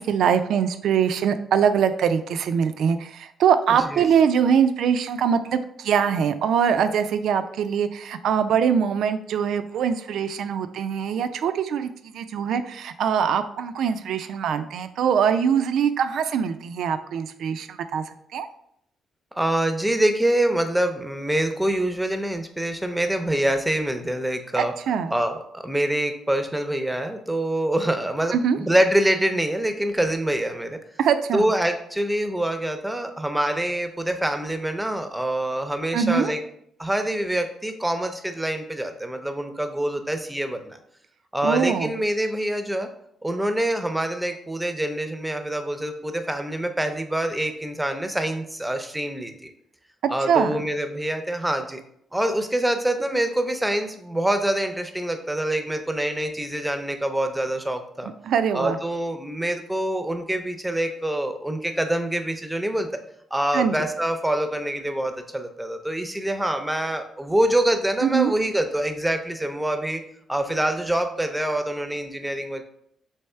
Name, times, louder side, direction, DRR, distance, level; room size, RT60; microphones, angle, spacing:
voice 1, 0.0-18.0 18.3-18.5 24.6-25.1 28.3-28.6 31.0-31.5 35.9-36.3 41.4-41.9 50.3-50.6 58.2-58.8 63.5-63.7 68.0-68.3, right 7 dB, 75° right, 10 dB, 0.3 m, -23 dB
voice 2, 19.4-24.7 25.1-30.8 31.3-36.4 36.8-40.8 41.3-42.9 43.2-49.5 50.1-51.8 52.1-58.1 58.5-63.0 63.3-70.0 70.3-72.6, right 1 dB, 5° right, 7 dB, 0.6 m, -25 dB
3.4 x 3.1 x 4.3 m, 0.71 s
cardioid pair, 80°, 0 cm